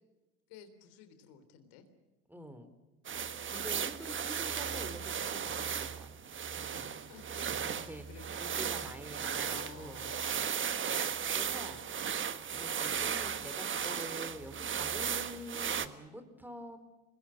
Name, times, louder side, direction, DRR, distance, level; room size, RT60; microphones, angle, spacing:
voice 1, 0.5-1.8 3.1-3.4 6.7-8.4 8.7-8.9 9.4-10.6, left 6 dB, 60° left, 9 dB, 3.7 m, -54 dB
voice 2, 2.3-2.7 3.5-6.6 6.9-7.0 7.5-8.0 8.4-10.0 11.3-11.8 12.5-16.8, equal, 5° right, 8 dB, 3.8 m, -47 dB
sound 1, 3.0-15.9, right 7 dB, 25° right, 1.4 m, -36 dB
28.5 x 21.5 x 6.5 m, 1.1 s
figure-of-eight pair, 70°, 43 cm